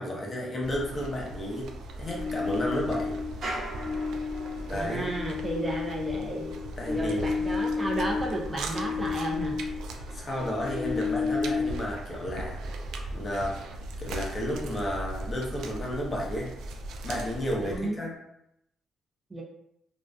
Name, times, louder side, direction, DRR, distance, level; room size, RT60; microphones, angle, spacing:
voice 1, 0.0-1.7 2.0-3.2 4.7-5.1 6.8-7.3 10.1-12.6 13.1-13.6 14.0-16.5 17.0-18.2, left 1 dB, 30° left, -2 dB, 0.7 m, -32 dB
sound 1, 0.6-17.8, right 1 dB, 80° right, 0.3 m, -39 dB
sound 2, 2.1-3.4 3.7-9.8 10.1-11.7, left 5 dB, 70° left, 0.7 m, -32 dB
sound 3, 3.4-12.9 13.2-14.8 15.1-15.2 15.5-16.0 16.3-17.5 18.0-18.1, right 1 dB, 55° right, 1.1 m, -46 dB
voice 2, 4.7-6.6 6.9-9.6 17.6-18.1 19.3-19.4, right 2 dB, 20° right, -1 dB, 0.5 m, -33 dB
2.4 x 2.4 x 2.2 m, 0.80 s
cardioid pair, 90°, 0 cm